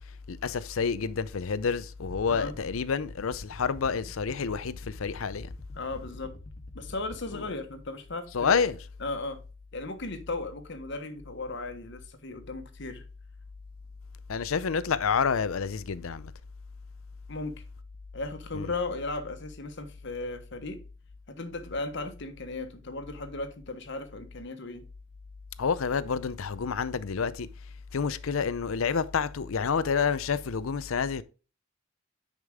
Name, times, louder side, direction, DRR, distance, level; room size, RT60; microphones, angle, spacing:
voice 1, 0.3-5.5 7.3-7.5 8.3-8.8 14.3-16.3 18.5-18.7 25.6-27.5 27.9-31.2, left 6 dB, 80° left, 0.6 m, -28 dB
sound 1, 2.0-7.2, left 1 dB, 40° left, 0.9 m, -46 dB
voice 2, 5.7-6.3 6.7-8.7 9.0-9.4 9.7-13.0 17.3-17.5 18.1-20.8 21.3-24.8, left 2 dB, 60° left, 1.3 m, -36 dB
9.7 x 5.2 x 3.6 m
head